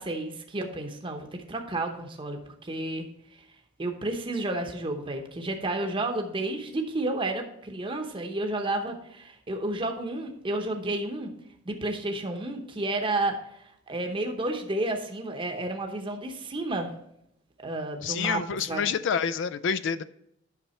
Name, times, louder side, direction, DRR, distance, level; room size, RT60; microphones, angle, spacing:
voice 1, 0.0-3.1 3.8-11.3 11.7-16.9 17.6-18.4 18.7-18.9, right 2 dB, 25° right, 4 dB, 0.9 m, -31 dB
voice 2, 18.0-20.0, left 7 dB, 65° left, 13 dB, 0.4 m, -28 dB
8.5 x 6.0 x 4.3 m, 0.77 s
head